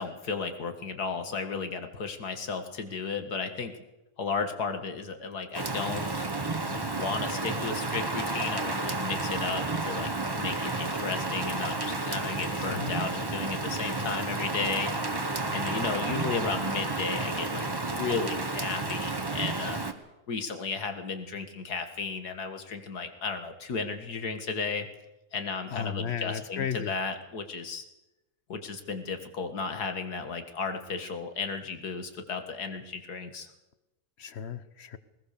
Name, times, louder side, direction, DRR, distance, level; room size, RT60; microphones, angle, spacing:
voice 1, 0.0-3.7 4.2-6.3 6.9-14.9 15.5-19.8 20.3-24.9 25.3-27.8 28.5-33.5, left 4 dB, 80° left, 7 dB, 2.4 m, -34 dB
Rain, 5.5-19.9, right 2 dB, 15° right, 1.1 m, -31 dB
voice 2, 12.5-12.9 25.7-26.9 34.2-35.0, left 7 dB, 50° left, 14 dB, 1.1 m, -34 dB
20.0 x 19.5 x 6.8 m, 0.96 s
omnidirectional pair, 1.7 m